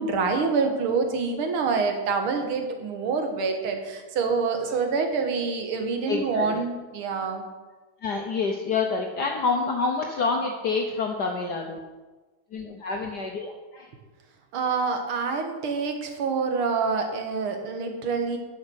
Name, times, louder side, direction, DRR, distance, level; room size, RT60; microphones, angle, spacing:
voice 1, 0.0-7.4 14.5-18.4, right 4 dB, 80° right, 4 dB, 2.2 m, -26 dB
voice 2, 6.1-6.5 8.0-11.8 12.5-13.9, left 4 dB, 60° left, 2 dB, 1.3 m, -27 dB
9.9 x 6.5 x 6.3 m, 1.3 s
omnidirectional pair, 2.3 m